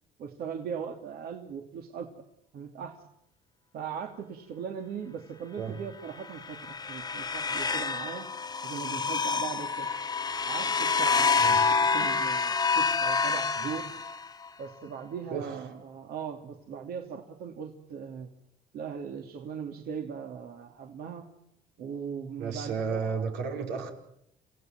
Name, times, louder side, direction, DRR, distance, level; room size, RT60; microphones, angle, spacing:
voice 1, 0.2-2.1 2.5-3.0 3.7-8.3 8.6-9.9 10.5-13.9 14.6-18.3 18.7-21.3 21.8-23.2, right 7 dB, 65° right, 3 dB, 2.8 m, -39 dB
sound 1, 6.2-14.5, left 5 dB, 25° left, 1.5 m, -28 dB
voice 2, 22.4-23.9, right 5 dB, 90° right, 3 dB, 5.5 m, -33 dB
28.5 x 17.0 x 9.2 m, 0.79 s
cardioid pair, 110°, 17 cm